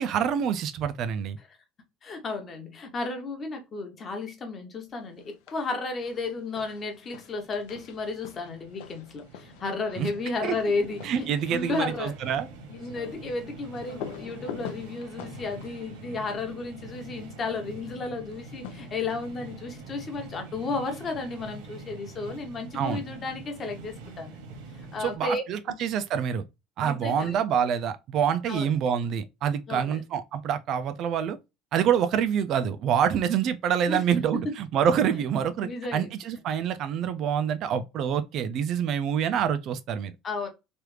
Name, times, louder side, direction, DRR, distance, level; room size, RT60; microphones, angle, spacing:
voice 1, 0.0-1.4 10.0-10.1 10.4-10.5 11.0-12.5 22.7-23.0 25.0-26.4 26.8-31.4 31.7-40.1, right 8 dB, 45° right, 0.3 m, -26 dB
voice 2, 2.0-12.2 12.8-24.5 24.9-25.4 25.7-25.8 26.8-27.4 28.5-28.7 29.7-30.0 33.9-34.2 35.6-36.1 40.2-40.5, left 3 dB, 25° left, 0.8 m, -33 dB
sound 1, 5.2-5.7 6.0-17.0 18.2-19.5, left 9 dB, 80° left, 0.5 m, -45 dB
sound 2, 7.4-25.2, right 3 dB, 90° right, 0.9 m, -45 dB
3.1 x 2.3 x 3.2 m
cardioid pair, 160°, 0 cm